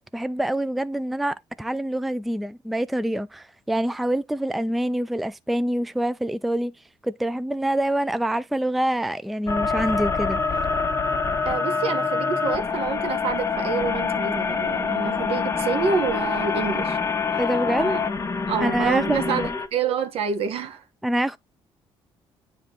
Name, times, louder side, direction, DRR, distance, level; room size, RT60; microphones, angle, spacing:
voice 1, 0.0-6.7 7.0-10.6 17.4-18.0 18.6-19.6 21.0-21.4, right 1 dB, ahead, 0.3 m, -26 dB
sound 1, 9.5-19.7, left 5 dB, 25° left, 1.0 m, -25 dB
voice 2, 11.4-17.0 17.8-18.0 18.5-20.8, right 6 dB, 70° right, 1.2 m, -27 dB
9.2 x 3.1 x 3.8 m
cardioid pair, 105°, 10 cm